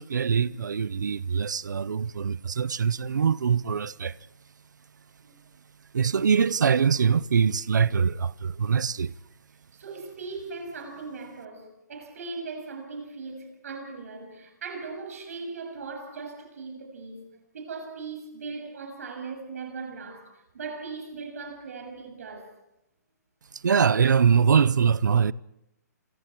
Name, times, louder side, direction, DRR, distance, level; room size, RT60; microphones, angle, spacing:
voice 1, 0.0-4.2 5.9-9.1 23.5-25.3, right 6 dB, 90° right, 0.7 m, -23 dB
voice 2, 9.7-22.5, right 4 dB, 55° right, 7.1 m, -39 dB
26.5 x 23.5 x 4.6 m
hypercardioid pair, 170°, 10 cm